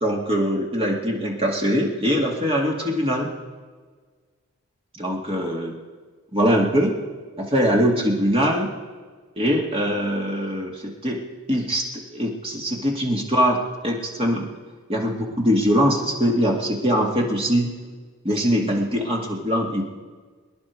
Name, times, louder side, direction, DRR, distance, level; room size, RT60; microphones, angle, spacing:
voice 1, 0.0-3.3 4.9-5.7 6.3-7.0 7.4-8.7 9.4-11.2 11.5-11.8 12.1-14.5 14.9-17.7 18.2-19.8, equal, 25° right, -1 dB, 2.3 m, -22 dB
25.0 x 10.5 x 4.7 m, 1.5 s
head